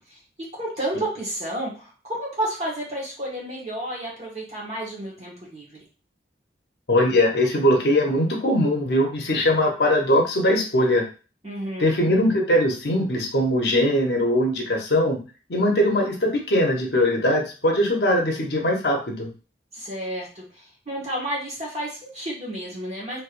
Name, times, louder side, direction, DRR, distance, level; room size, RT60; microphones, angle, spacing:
voice 1, 0.4-5.7 11.4-12.0 19.7-23.2, right 1 dB, 35° right, -4 dB, 1.4 m, -31 dB
voice 2, 6.9-11.0 11.8-15.2 15.5-19.3, left 1 dB, 65° left, 1 dB, 0.8 m, -21 dB
3.3 x 3.1 x 2.5 m, 0.35 s
head